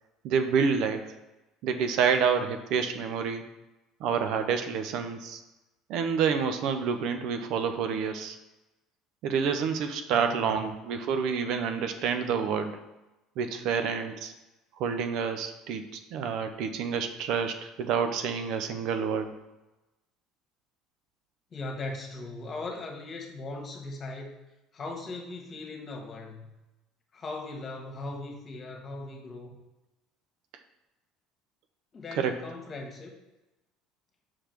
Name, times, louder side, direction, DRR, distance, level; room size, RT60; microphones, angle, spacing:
voice 1, 0.2-1.1 1.6-3.4 4.0-5.4 5.9-8.4 9.2-12.8 13.4-14.3 14.8-19.4 32.2-32.3, right 6 dB, 60° right, 7 dB, 0.6 m, -28 dB
voice 2, 10.1-10.5 21.5-24.3 24.7-26.5 27.1-29.5 31.9-33.1, left 2 dB, 40° left, 2 dB, 1.6 m, -39 dB
5.9 x 4.9 x 4.5 m, 1.0 s
hypercardioid pair, 65°, 0 cm